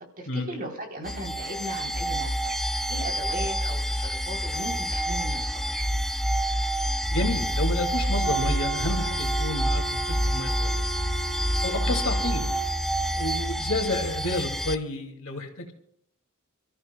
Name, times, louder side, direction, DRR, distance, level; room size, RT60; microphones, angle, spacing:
voice 1, 0.2-2.5 2.9-5.9, right 1 dB, 45° right, 2 dB, 3.3 m, -37 dB
sound 1, 1.1-14.8, equal, ahead, 0.5 m, -27 dB
voice 2, 7.1-10.9 11.6-12.5 13.1-15.7, left 2 dB, 65° left, 3 dB, 2.3 m, -30 dB
Wind instrument woodwind instrument, 8.2-12.9, right 4 dB, 65° right, 0.9 m, -38 dB
29.5 x 14.0 x 2.2 m, 0.69 s
head